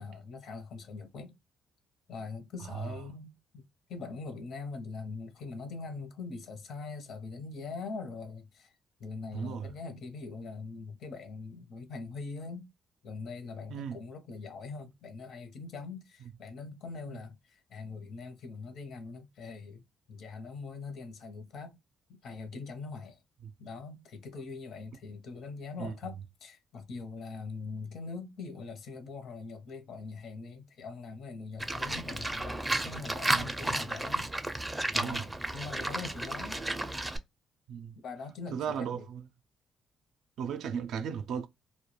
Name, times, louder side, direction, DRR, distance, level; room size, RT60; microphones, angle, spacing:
voice 1, 0.0-1.3 2.1-3.6 3.9-8.7 9.0-12.7 13.0-21.8 22.1-23.2 23.6-36.6 38.0-39.1, left 4 dB, 70° left, 0.7 m, -42 dB
voice 2, 9.3-9.7 13.7-14.0 23.4-23.5 25.8-25.9 33.3-33.5 34.9-35.2 37.7-37.9 38.5-39.2 40.4-41.5, right 7 dB, 80° right, 0.3 m, -35 dB
Livestock farm animals working animals, 31.6-37.2, right 1 dB, 10° right, 0.4 m, -33 dB
2.2 x 2.1 x 2.9 m
cardioid pair, 90°, 0 cm